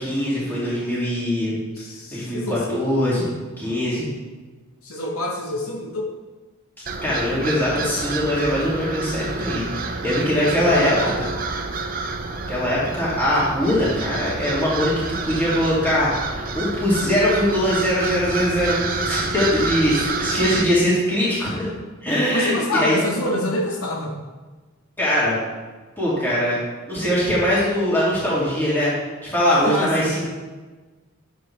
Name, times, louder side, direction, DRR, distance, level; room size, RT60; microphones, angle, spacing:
voice 1, 0.0-1.5 2.1-3.3 3.6-4.1 7.0-11.3 12.5-21.7 22.0-23.0 25.0-25.4 26.0-26.6 26.9-28.9 29.2-30.3, equal, 10° left, -9 dB, 2.4 m, -22 dB
voice 2, 1.8-2.9 4.8-6.1 10.4-11.2 22.3-24.1 29.7-30.2, left 1 dB, 80° left, 0 dB, 1.1 m, -26 dB
sound 1, 6.9-20.6, right 3 dB, 40° right, 0.6 m, -28 dB
10.0 x 7.0 x 3.3 m, 1.3 s
head